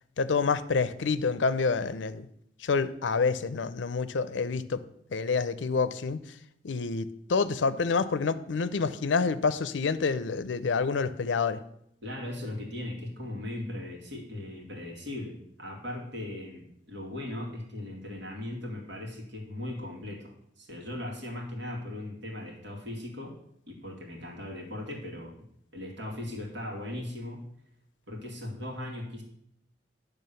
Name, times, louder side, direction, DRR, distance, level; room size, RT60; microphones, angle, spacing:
voice 1, 0.2-2.3 2.6-4.8 5.1-6.2 6.6-11.6, left 4 dB, 85° left, 14 dB, 0.5 m, -28 dB
voice 2, 12.0-23.4 23.7-25.3 25.7-27.4 28.1-29.2, left 1 dB, 80° right, -1 dB, 2.3 m, -38 dB
10.5 x 3.5 x 6.9 m, 0.75 s
head